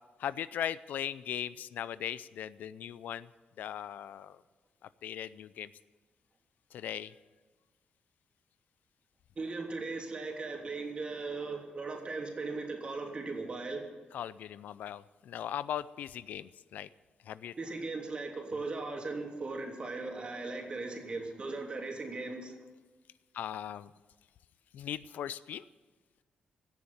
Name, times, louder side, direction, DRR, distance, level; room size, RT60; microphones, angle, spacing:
voice 1, 0.2-3.3 3.6-4.4 5.0-5.7 6.7-7.1 14.1-16.9 17.3-17.5 23.3-23.9 24.7-25.6, left 10 dB, 80° left, 17 dB, 0.5 m, -38 dB
voice 2, 9.4-13.8 17.6-22.6, right 3 dB, 40° right, 2 dB, 3.0 m, -38 dB
16.5 x 7.1 x 9.3 m, 1.3 s
cardioid pair, 90°, 3 cm